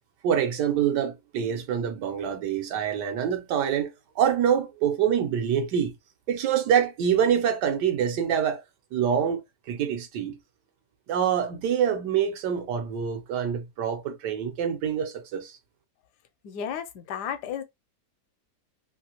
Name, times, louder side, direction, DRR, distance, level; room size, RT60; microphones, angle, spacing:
voice 1, 0.2-5.9 6.3-8.6 8.9-9.4 9.7-10.4 11.1-15.6, right 8 dB, 90° right, 1.4 m, -25 dB
voice 2, 16.4-17.6, left 8 dB, 75° left, 1.2 m, -33 dB
3.2 x 2.6 x 2.8 m
omnidirectional pair, 1.8 m